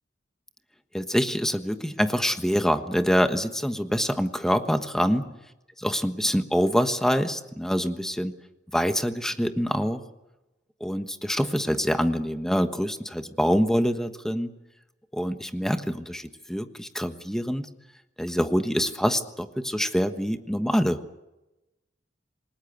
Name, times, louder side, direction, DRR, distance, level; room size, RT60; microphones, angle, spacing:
voice 1, 0.9-5.3 5.8-8.3 8.7-10.0 10.8-14.5 15.1-17.7 18.2-21.0, equal, 5° left, 8 dB, 1.3 m, -25 dB
28.0 x 20.0 x 8.0 m, 0.99 s
head